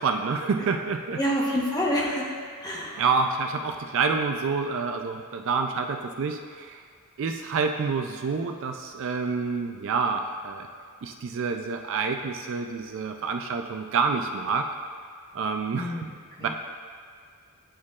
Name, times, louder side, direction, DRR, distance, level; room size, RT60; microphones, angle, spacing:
voice 1, 0.0-1.2 3.0-6.8 7.2-10.7 11.0-14.7 15.3-15.9 16.4-16.5, right 5 dB, 60° right, 4 dB, 0.4 m, -28 dB
voice 2, 1.2-2.3 2.6-3.0 15.7-16.5, equal, 20° left, -4 dB, 0.9 m, -28 dB
10.0 x 4.3 x 2.4 m, 2.1 s
head